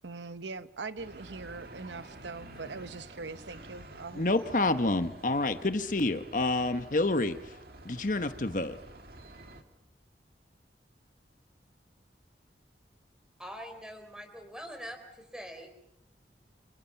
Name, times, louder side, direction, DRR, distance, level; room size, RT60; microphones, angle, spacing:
voice 1, 0.0-4.2, right 4 dB, 85° right, 13 dB, 0.9 m, -41 dB
sound 1, 1.0-9.6, right 1 dB, 55° right, 2.3 m, -50 dB
voice 2, 4.1-7.4 7.8-8.8, left 2 dB, 45° left, 9 dB, 1.1 m, -28 dB
voice 3, 13.4-15.7, equal, 5° right, 6 dB, 4.0 m, -43 dB
30.0 x 27.0 x 5.8 m, 0.79 s
head